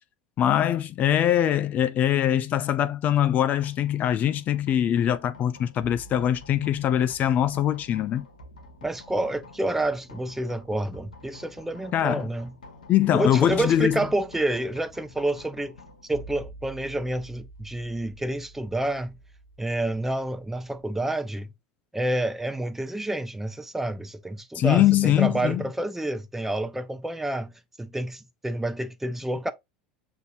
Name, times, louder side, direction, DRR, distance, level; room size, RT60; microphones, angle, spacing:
voice 1, 0.4-8.3 11.9-12.3 12.9-14.0 24.5-25.6, left 11 dB, 40° left, 0.4 m, -22 dB
sound 1, 3.6-20.8, equal, 85° left, 1.0 m, -48 dB
voice 2, 8.8-12.5 13.1-15.7 16.0-19.2 19.6-21.5 21.9-27.5 27.8-29.5, right 1 dB, 5° right, 0.6 m, -29 dB
6.7 x 2.7 x 2.7 m
hypercardioid pair, 85°, 4 cm